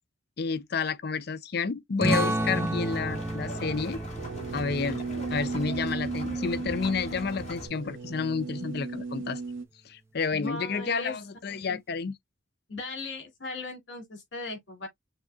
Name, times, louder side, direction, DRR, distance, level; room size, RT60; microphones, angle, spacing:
voice 1, 0.4-4.0 4.5-5.0 5.3-9.4 9.9-12.2, left 5 dB, 55° left, 0.5 m, -30 dB
sound 1, 2.0-7.2, right 1 dB, 15° right, 0.6 m, -32 dB
sound 2, 2.4-7.7, equal, 35° left, 2.1 m, -40 dB
sound 3, 4.2-9.6, right 4 dB, 85° right, 0.6 m, -35 dB
voice 2, 10.3-11.1 11.6-11.8 12.7-14.9, left 3 dB, 70° left, 2.5 m, -38 dB
6.4 x 2.6 x 2.3 m
head